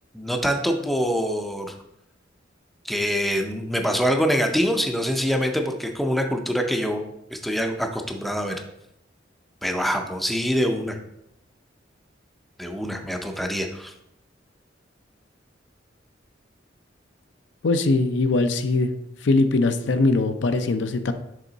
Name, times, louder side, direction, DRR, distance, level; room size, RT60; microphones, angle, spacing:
voice 1, 0.1-1.7 2.8-7.0 7.3-8.6 9.6-11.0 12.6-13.9, equal, ahead, 4 dB, 0.5 m, -25 dB
voice 2, 17.6-18.9 19.2-21.1, left 3 dB, 70° left, 8 dB, 0.5 m, -21 dB
6.8 x 3.5 x 3.9 m, 0.82 s
head